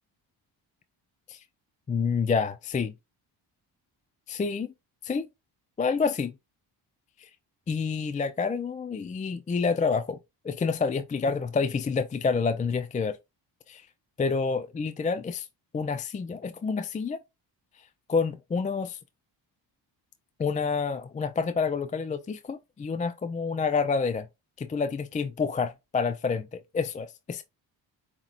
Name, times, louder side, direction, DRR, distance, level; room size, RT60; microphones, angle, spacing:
voice 1, 1.9-2.9 4.3-4.7 5.0-5.3 5.8-6.3 7.2-7.3 7.7-10.2 10.4-13.2 13.7-13.8 14.2-15.5 15.7-17.2 18.1-19.0 20.4-24.3 24.6-27.4, left 5 dB, 20° left, 0.3 m, -28 dB
7.1 x 3.0 x 2.4 m
cardioid pair, 75°, 45 cm